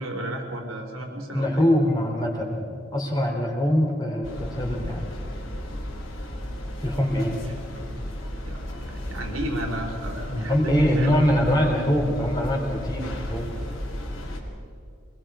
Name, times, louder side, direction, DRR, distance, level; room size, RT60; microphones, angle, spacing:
voice 1, 0.0-1.5 7.2-7.7 8.4-11.2, right 1 dB, 80° right, 2 dB, 3.9 m, -33 dB
voice 2, 1.3-5.0 6.8-7.4 10.3-13.5, equal, 20° left, 0 dB, 3.4 m, -23 dB
sound 1, 4.2-14.4, equal, 80° left, 3.8 m, -34 dB
25.5 x 20.5 x 5.0 m, 2.5 s
head